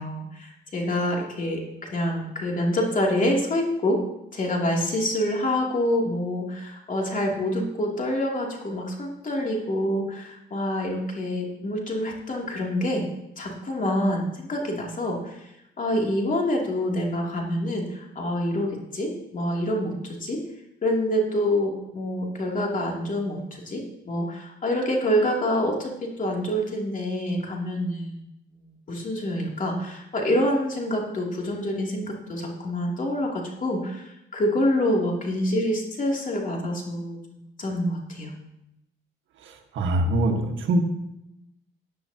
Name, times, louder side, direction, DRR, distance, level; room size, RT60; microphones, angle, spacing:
voice 1, 0.0-4.0 4.3-13.0 13.4-15.5 15.8-20.4 20.8-28.2 28.9-38.3, left 1 dB, 40° left, -1 dB, 2.8 m, -26 dB
voice 2, 39.4-40.8, right 1 dB, 75° right, 4 dB, 1.6 m, -24 dB
15.0 x 9.8 x 2.9 m, 0.85 s
cardioid pair, 90°, 20 cm